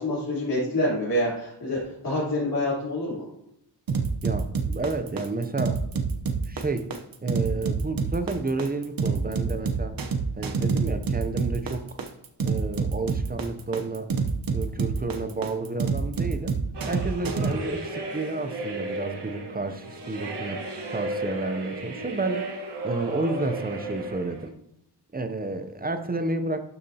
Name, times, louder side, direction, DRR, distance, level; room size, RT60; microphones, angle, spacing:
voice 1, 0.0-1.8 2.0-3.2, left 1 dB, 55° left, -9 dB, 3.6 m, -26 dB
sound 1, 3.9-17.5, right 5 dB, 55° right, 0.9 m, -27 dB
voice 2, 4.2-5.8 6.5-6.9 7.2-10.0 10.4-12.0 12.4-14.2 14.5-16.6 16.9-24.5 25.1-26.6, right 3 dB, 20° right, 9 dB, 0.6 m, -31 dB
sound 2, 16.7-24.5, right 1 dB, 75° right, 1.4 m, -34 dB
12.0 x 6.9 x 2.8 m, 0.78 s
wide cardioid pair, 175°, 41 cm